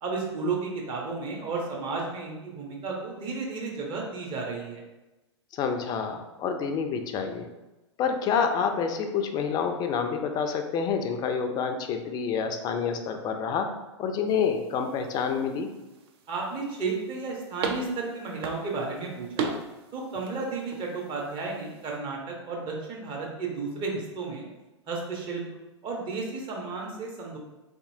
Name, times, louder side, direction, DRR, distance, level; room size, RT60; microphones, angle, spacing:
voice 1, 0.0-4.8 16.3-19.5 19.9-24.4 24.9-25.4 25.8-27.4, right 4 dB, 30° right, -2 dB, 0.9 m, -33 dB
voice 2, 5.5-7.5 8.0-13.7 14.0-15.7, left 6 dB, 25° left, 6 dB, 0.4 m, -28 dB
sound 1, 14.3-22.0, right 5 dB, 50° right, 0.5 m, -39 dB
3.4 x 2.8 x 2.7 m, 1.1 s
figure-of-eight pair, 100°, 16 cm